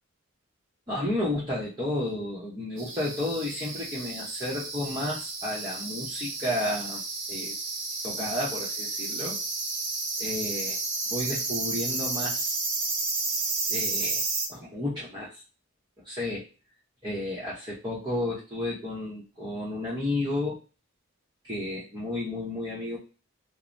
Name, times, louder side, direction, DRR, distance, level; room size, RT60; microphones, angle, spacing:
voice 1, 0.9-7.0 7.3-7.5 8.0-9.4 10.2-10.8 11.1-12.5 13.7-14.2 14.5-15.4 16.0-16.5 17.0-20.6 21.4-23.0, left 1 dB, 20° right, -7 dB, 0.7 m, -32 dB
sound 1, 2.8-14.5, right 3 dB, 65° right, 0.9 m, -32 dB
3.1 x 2.0 x 2.5 m, 0.34 s
head